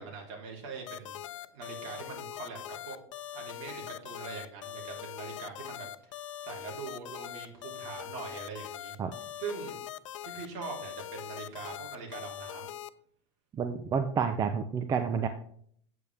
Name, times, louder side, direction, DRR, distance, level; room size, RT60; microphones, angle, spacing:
voice 1, 0.0-2.6 2.9-3.0 3.3-6.1 6.4-9.0 9.4-9.7 10.2-12.7, right 5 dB, 55° right, -1 dB, 3.6 m, -42 dB
sound 1, 0.9-12.9, left 12 dB, 85° left, 0.6 m, -42 dB
voice 2, 13.5-15.3, right 6 dB, 25° right, 8 dB, 0.6 m, -29 dB
8.5 x 8.4 x 3.5 m, 0.62 s
supercardioid pair, 135°, 16 cm